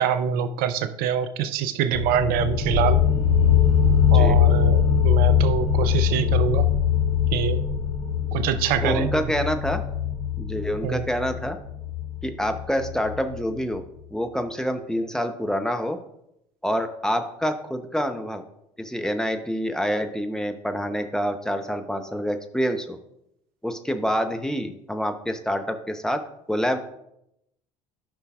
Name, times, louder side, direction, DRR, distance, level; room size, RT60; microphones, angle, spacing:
voice 1, 0.0-3.0 4.1-6.7 7.3-7.6 8.3-9.1 10.8-11.0, right 8 dB, 60° right, 11 dB, 0.6 m, -25 dB
sound 1, 1.9-13.3, left 8 dB, 75° left, 2.9 m, -22 dB
voice 2, 8.8-9.8 10.4-11.6 12.2-13.8 14.1-16.0 16.6-18.4 18.8-23.0 23.6-26.8, equal, 5° left, 6 dB, 0.8 m, -27 dB
13.0 x 5.5 x 2.4 m, 0.81 s
hypercardioid pair, 65°, 18 cm